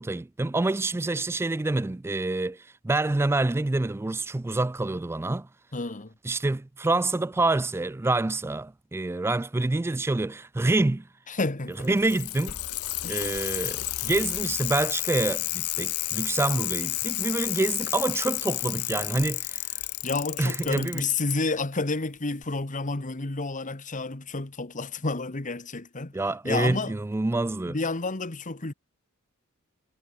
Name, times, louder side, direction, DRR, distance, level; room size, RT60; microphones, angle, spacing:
voice 1, 0.0-5.5 6.2-11.0 11.8-12.6 13.1-19.7 20.4-21.0 26.1-27.8, right 2 dB, 10° right, 0.3 m, -27 dB
voice 2, 5.7-6.1 11.3-12.0 13.0-13.3 20.0-26.1 26.4-26.9 27.7-28.7, left 3 dB, 35° left, 1.5 m, -30 dB
Bicycle, 11.7-21.3 22.4-22.5, left 18 dB, 85° left, 0.9 m, -31 dB
head